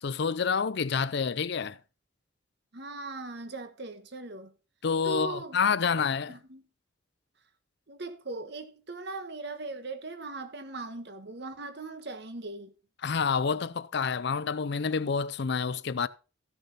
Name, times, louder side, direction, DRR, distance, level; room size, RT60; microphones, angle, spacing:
voice 1, 0.0-1.8 4.8-6.3 13.0-16.1, left 5 dB, 60° left, 0.5 m, -28 dB
voice 2, 2.7-4.5 5.0-5.6 6.3-6.6 7.9-12.7, right 2 dB, 60° right, 1.3 m, -39 dB
14.5 x 6.7 x 4.1 m
head